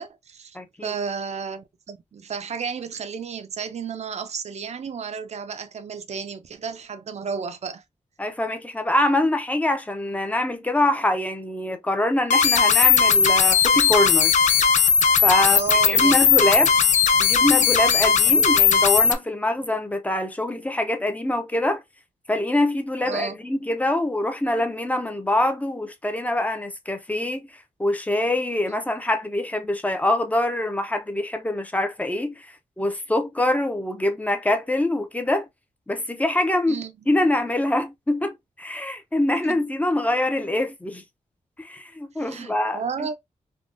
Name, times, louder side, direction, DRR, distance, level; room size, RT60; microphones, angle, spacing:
voice 1, 0.0-0.6 0.8-7.8 15.4-16.2 18.2-18.5 23.0-23.3 36.7-36.9 39.3-39.6 42.2-43.2, right 6 dB, 60° right, 0.5 m, -32 dB
voice 2, 0.5-0.9 8.2-14.3 15.2-16.7 17.2-21.8 22.3-35.5 35.9-41.0 41.6-43.2, left 1 dB, 10° left, 0.6 m, -24 dB
sound 1, 12.3-19.1, left 6 dB, 70° left, 0.4 m, -17 dB
3.6 x 2.3 x 2.5 m
wide cardioid pair, 90°, 13 cm